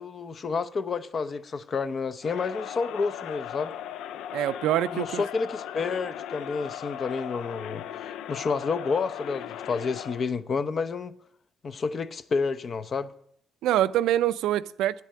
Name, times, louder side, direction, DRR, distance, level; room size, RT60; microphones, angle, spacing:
voice 1, 0.0-3.7 4.9-11.1 11.6-13.1, left 4 dB, 45° left, 0.6 m, -30 dB
Crowd, 2.2-10.3, left 10 dB, 85° left, 0.3 m, -38 dB
voice 2, 4.3-5.2 13.6-15.0, right 12 dB, 90° right, 0.4 m, -25 dB
9.1 x 8.4 x 7.6 m
cardioid pair, 90°, 0 cm